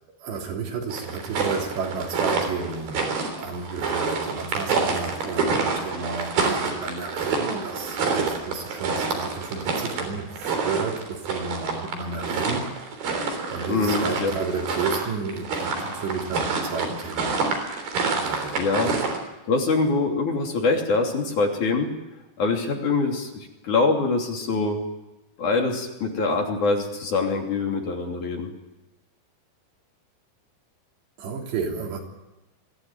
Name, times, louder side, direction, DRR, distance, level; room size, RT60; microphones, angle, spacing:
voice 1, 0.2-12.7 13.5-17.4 18.1-18.6 18.8-19.0 31.2-32.0, right 5 dB, 80° right, 1 dB, 5.7 m, -32 dB
sound 1, 0.9-19.2, right 4 dB, 60° right, 5.3 m, -28 dB
voice 2, 13.7-14.3 18.6-18.9 19.5-21.9 22.4-24.8 25.4-28.5, left 3 dB, 50° left, 1 dB, 4.2 m, -24 dB
23.5 x 16.0 x 9.1 m, 0.99 s
omnidirectional pair, 4.9 m